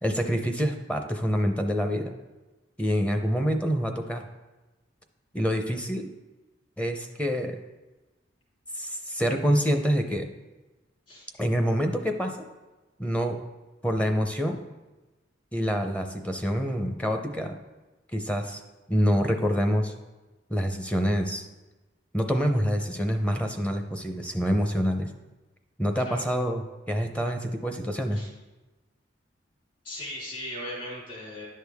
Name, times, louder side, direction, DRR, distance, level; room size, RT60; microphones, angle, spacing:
voice 1, 0.0-2.1 2.8-4.3 5.3-6.1 6.8-7.6 8.7-10.3 11.4-12.4 13.0-13.4 13.8-14.6 15.5-17.5 18.1-18.6 18.9-19.9 20.5-21.5 22.1-25.1 25.8-28.2, equal, 5° left, 5 dB, 0.6 m, -26 dB
voice 2, 29.8-31.5, left 1 dB, 45° left, -5 dB, 3.2 m, -38 dB
10.5 x 6.5 x 3.5 m, 1.1 s
head